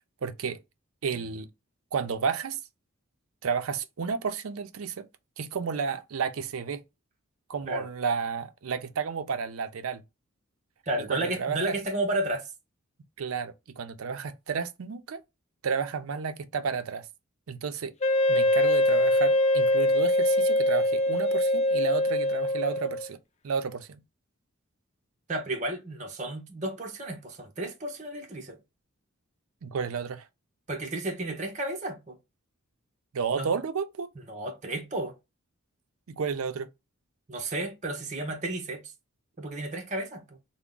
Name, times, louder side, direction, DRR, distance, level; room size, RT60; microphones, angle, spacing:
voice 1, 0.2-0.6 1.0-1.5 1.9-2.6 3.4-5.1 5.4-6.8 7.5-10.0 11.1-11.8 13.2-15.2 15.6-17.1 17.5-17.9 18.3-23.2 23.4-24.0 29.6-30.3 33.1-34.1 36.1-36.7, right 5 dB, 75° right, 0.5 m, -31 dB
voice 2, 10.9-12.5 25.3-28.6 30.7-32.2 33.3-33.5 34.3-35.1 37.3-38.8 39.4-40.4, right 1 dB, 35° right, 0.7 m, -32 dB
Wind instrument woodwind instrument, 18.0-23.1, left 1 dB, 30° left, 0.3 m, -23 dB
3.4 x 2.1 x 3.7 m
head